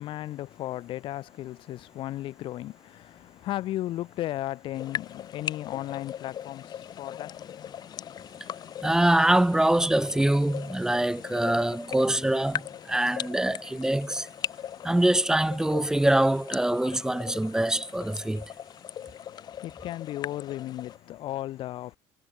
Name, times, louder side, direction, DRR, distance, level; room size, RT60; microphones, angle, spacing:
voice 1, 0.0-8.1 19.0-22.0, left 14 dB, 60° left, 1.5 m, -36 dB
sound 1, 4.7-21.0, left 10 dB, 45° left, 6.3 m, -39 dB
voice 2, 8.8-14.3 14.8-18.5, right 1 dB, 5° right, 1.7 m, -24 dB
cardioid pair, 135°, 10 cm